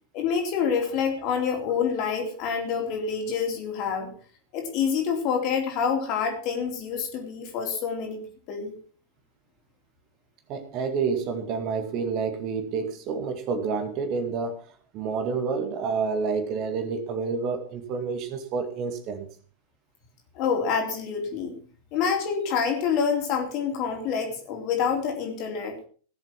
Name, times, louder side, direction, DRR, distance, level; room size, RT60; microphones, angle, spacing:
voice 1, 0.1-4.1 4.5-8.2 8.5-8.7 20.3-21.5 21.9-25.8, left 6 dB, 40° left, 3 dB, 3.8 m, -27 dB
voice 2, 10.5-14.6 14.9-19.3, right 5 dB, 40° right, 7 dB, 2.1 m, -29 dB
17.0 x 7.7 x 6.0 m, 0.43 s
figure-of-eight pair, 90°, 0 cm